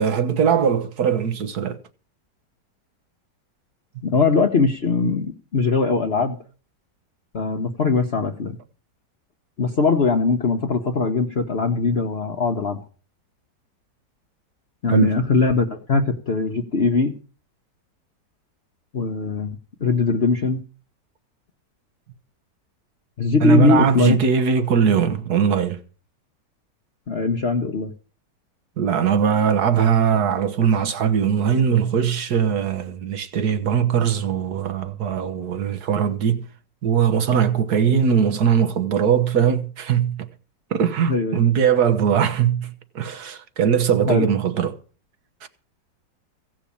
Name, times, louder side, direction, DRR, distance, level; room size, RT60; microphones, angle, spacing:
voice 1, 0.0-1.8 14.9-15.2 23.4-25.8 28.8-36.4 36.8-40.3 40.7-44.8 45.4-45.5, right 7 dB, 60° right, 1.7 m, -20 dB
voice 2, 4.0-6.4 7.3-8.6 9.6-12.8 14.8-17.1 18.9-20.6 23.2-24.1 27.1-27.9 41.1-41.4 44.0-44.3, left 4 dB, 40° left, 1.1 m, -21 dB
16.5 x 6.2 x 8.5 m
omnidirectional pair, 1.9 m